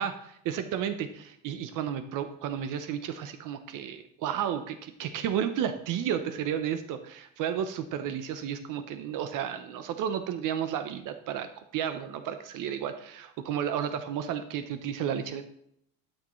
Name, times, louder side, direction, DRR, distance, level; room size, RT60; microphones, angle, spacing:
voice 1, 0.0-15.5, right 9 dB, 50° right, 9 dB, 0.8 m, -32 dB
12.0 x 6.5 x 3.1 m, 0.71 s
cardioid pair, 160°, 40 cm